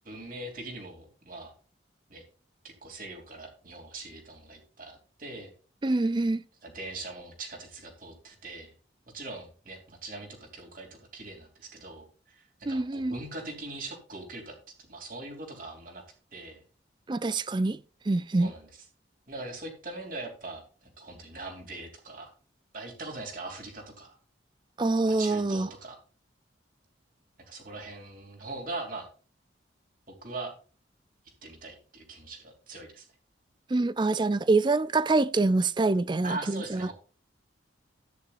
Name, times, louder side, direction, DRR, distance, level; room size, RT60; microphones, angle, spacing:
voice 1, 0.0-1.5 2.1-2.2 2.6-5.5 6.6-8.7 9.1-16.0 16.3-16.6 18.4-18.7 19.3-20.6 21.0-22.3 22.7-24.2 25.1-26.0 27.5-29.1 30.1-30.5 31.4-33.1 36.2-36.9, right 2 dB, 45° right, 3.0 m, -41 dB
voice 2, 5.8-6.4 12.7-13.2 17.1-17.8 18.1-18.5 24.8-25.7 33.7-36.9, right 3 dB, 25° right, 0.4 m, -25 dB
13.5 x 9.7 x 2.5 m
head